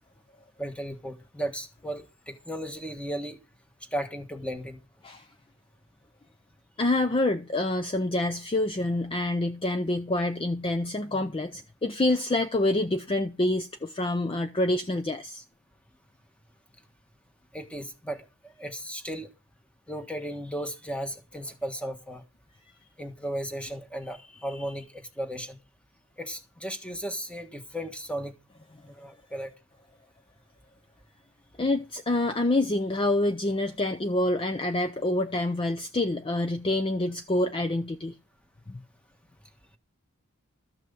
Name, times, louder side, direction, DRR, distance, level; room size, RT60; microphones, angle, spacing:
voice 1, 0.6-3.4 3.9-4.8 17.5-19.3 19.9-22.2 23.0-25.6 26.2-28.4 28.9-29.5, equal, 5° left, 1.3 m, -35 dB
voice 2, 6.8-15.4 31.6-38.1 38.7-38.8, left 2 dB, 25° left, 0.5 m, -27 dB
13.0 x 5.9 x 6.9 m
head